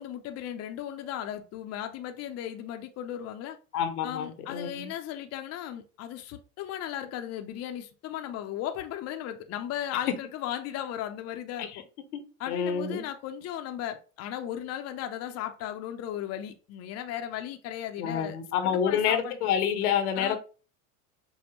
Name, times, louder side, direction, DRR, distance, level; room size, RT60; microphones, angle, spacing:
voice 1, 0.0-3.6 4.0-11.8 12.4-18.4 18.6-19.4 20.2-20.4, left 11 dB, 35° left, 0.5 m, -36 dB
voice 2, 3.7-4.9 11.6-11.8 12.5-13.0 18.0-20.4, left 8 dB, 85° left, 1.0 m, -28 dB
5.3 x 2.1 x 3.0 m
supercardioid pair, 105°, 44 cm